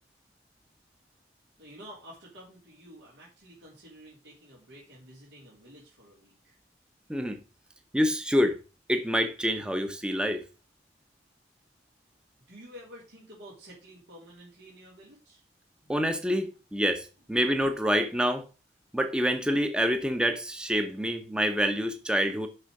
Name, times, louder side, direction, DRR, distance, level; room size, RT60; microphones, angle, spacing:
voice 1, 1.6-6.6 12.5-15.4, equal, 80° right, 3.5 m, -50 dB
voice 2, 7.9-8.6 8.9-10.4 15.9-18.4 18.9-22.5, equal, 5° right, 0.8 m, -27 dB
6.6 x 5.6 x 6.4 m
head